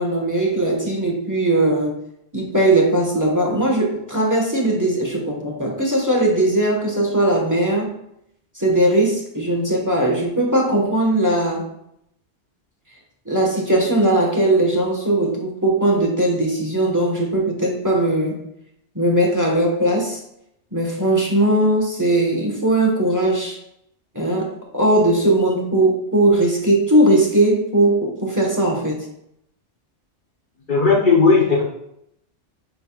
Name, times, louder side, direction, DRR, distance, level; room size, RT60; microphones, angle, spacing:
voice 1, 0.0-1.9 2.3-7.9 8.6-11.7 13.2-18.4 18.9-20.2 20.7-23.6 24.1-29.0, right 1 dB, 15° right, -1 dB, 1.4 m, -19 dB
voice 2, 30.7-31.6, left 4 dB, 45° left, -1 dB, 1.0 m, -15 dB
9.3 x 5.2 x 2.4 m, 0.76 s
omnidirectional pair, 1.2 m